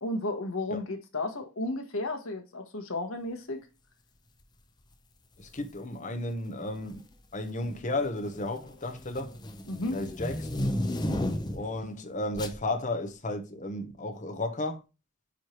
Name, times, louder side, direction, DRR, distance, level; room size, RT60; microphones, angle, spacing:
voice 1, 0.0-3.6 9.7-10.0, left 2 dB, 65° left, 1.5 m, -33 dB
voice 2, 5.4-7.0 7.3-9.3 9.9-10.5 11.5-14.8, left 2 dB, 35° left, 1.0 m, -33 dB
sound 1, 5.4-5.7 6.7-7.1 7.5-11.8 12.3-12.6, left 1 dB, 20° left, 0.6 m, -33 dB
9.3 x 3.3 x 4.4 m
head